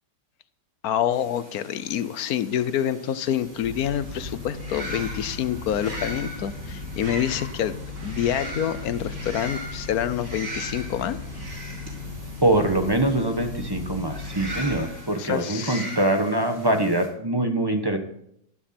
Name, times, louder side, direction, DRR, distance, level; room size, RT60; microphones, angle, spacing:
voice 1, 0.8-7.8 8.0-11.2 15.2-15.9, left 10 dB, 65° left, 14 dB, 1.1 m, -27 dB
sound 1, 1.1-17.1, right 1 dB, 35° right, 4.6 m, -40 dB
sound 2, 3.3-15.1, left 3 dB, 75° right, 3.0 m, -37 dB
voice 2, 12.4-18.0, right 1 dB, 15° right, 6 dB, 1.0 m, -23 dB
12.5 x 11.5 x 4.4 m, 0.71 s
omnidirectional pair, 1.8 m